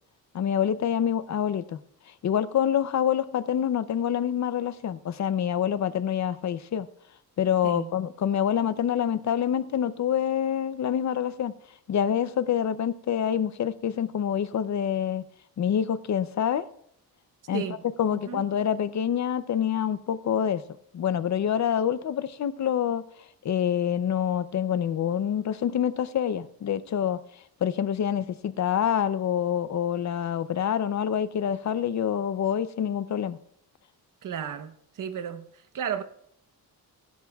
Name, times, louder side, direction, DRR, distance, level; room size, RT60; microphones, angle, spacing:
voice 1, 0.3-1.8 2.2-6.9 7.4-11.5 11.9-15.2 15.6-16.7 17.5-17.6 18.0-20.6 20.9-23.0 23.4-27.2 27.6-33.4, left 9 dB, 50° left, 0.6 m, -26 dB
voice 2, 34.2-35.5 35.7-36.0, right 8 dB, 60° right, 1.0 m, -33 dB
25.0 x 11.5 x 2.3 m
cardioid pair, 130°, 37 cm